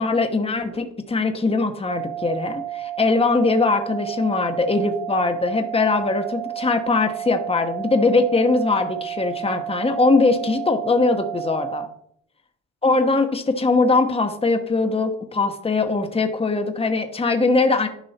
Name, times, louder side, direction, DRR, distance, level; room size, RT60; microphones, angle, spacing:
voice 1, 0.0-11.9 12.8-17.9, left 3 dB, 20° left, 6 dB, 1.1 m, -21 dB
sound 1, 1.9-11.9, right 13 dB, 90° right, 1.0 m, -31 dB
11.5 x 5.4 x 4.3 m, 0.67 s
cardioid pair, 90°, 30 cm